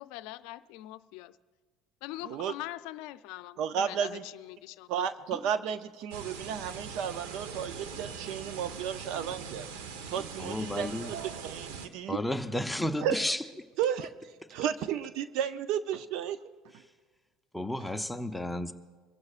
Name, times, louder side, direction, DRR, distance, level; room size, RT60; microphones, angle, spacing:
voice 1, 0.0-1.4 2.0-4.9, left 16 dB, 75° left, 0.5 m, -42 dB
voice 2, 3.6-4.2 4.9-9.7 10.1-10.9 11.4-12.2 13.0-13.2 13.8-14.1 14.5-16.4, right 8 dB, 65° right, 0.5 m, -33 dB
sound 1, 4.2-4.3 5.1-5.6 5.9-6.5 6.8-7.0 7.7-8.2 8.7-8.8 9.0-9.2 9.9-10.5 10.9-11.3, left 3 dB, 25° left, 1.9 m, -51 dB
sound 2, 6.1-11.9, right 6 dB, 90° right, 1.0 m, -41 dB
voice 3, 10.4-11.1 12.1-13.4 14.4-14.6 16.8-16.9 17.5-18.7, left 1 dB, 5° left, 0.6 m, -32 dB
24.0 x 15.5 x 2.4 m
supercardioid pair, 120°, 0 cm